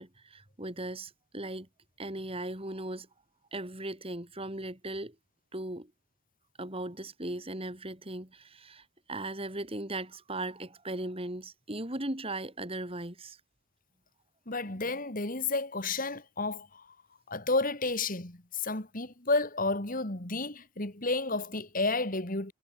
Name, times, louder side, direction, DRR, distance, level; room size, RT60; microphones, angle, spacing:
voice 1, 0.0-1.7 2.0-3.1 3.5-5.1 5.5-5.9 6.6-13.4, right 1 dB, 25° right, 3.4 m, -38 dB
voice 2, 14.5-16.8 17.3-22.5, left 3 dB, 40° left, 2.5 m, -31 dB
head